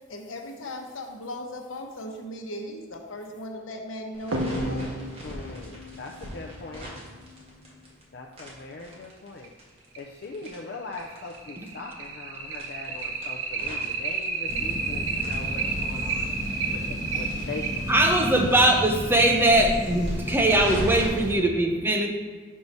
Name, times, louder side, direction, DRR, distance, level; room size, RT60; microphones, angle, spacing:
voice 1, 0.1-4.9, left 1 dB, 85° left, 2 dB, 0.9 m, -37 dB
sound 1, 4.1-8.0 8.3-11.4 11.6-11.7 12.0-12.1 12.5-14.9 15.2-18.2 18.5-18.6 18.9-19.0 19.3-21.1, equal, 30° right, 1.6 m, -39 dB
sound 2, 4.3-7.5 8.9-9.0 9.4-9.5 9.9-10.0 10.5-20.5, right 4 dB, 85° right, 0.8 m, -32 dB
voice 2, 5.2-6.9 8.1-9.5 10.0-16.3 16.7-17.9, left 3 dB, 55° left, 1 dB, 0.5 m, -40 dB
sound 3, 14.5-21.4, equal, 40° left, 1.2 m, -33 dB
voice 3, 17.9-22.1, right 1 dB, 10° right, 2 dB, 0.6 m, -21 dB
5.4 x 4.6 x 5.3 m, 1.5 s
head